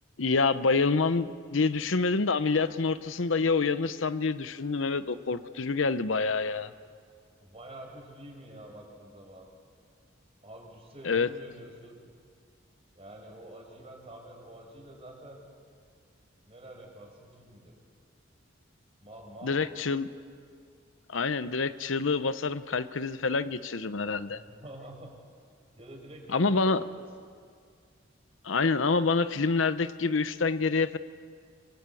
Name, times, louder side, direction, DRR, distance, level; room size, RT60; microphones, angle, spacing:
voice 1, 0.2-6.7 11.0-11.3 19.4-20.1 21.1-24.4 26.3-26.8 28.4-31.0, left 4 dB, 80° left, 12 dB, 0.8 m, -27 dB
voice 2, 7.4-9.5 10.4-12.0 12.9-15.4 16.4-17.7 19.0-20.1 24.3-25.1 25.8-27.0, right 1 dB, 30° right, 1 dB, 5.4 m, -47 dB
27.0 x 23.5 x 8.4 m, 2.1 s
head